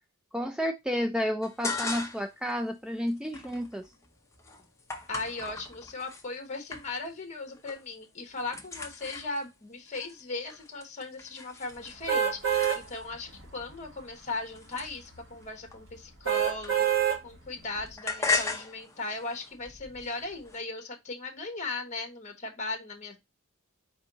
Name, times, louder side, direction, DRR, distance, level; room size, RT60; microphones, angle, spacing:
voice 1, 0.3-3.9, equal, 5° right, 0.3 m, -31 dB
sound 1, 1.4-2.4 2.7-6.3 6.7-7.2 7.5-7.9 8.2-13.3 13.9-17.1 17.4-20.6, left 3 dB, 15° left, 0.7 m, -37 dB
voice 2, 5.1-23.2, left 3 dB, 35° left, 1.1 m, -38 dB
sound 2, 12.1-12.8 13.3-13.4 16.2-17.2 17.7-17.8, right 9 dB, 60° right, 1.3 m, -25 dB
4.5 x 2.7 x 3.8 m
head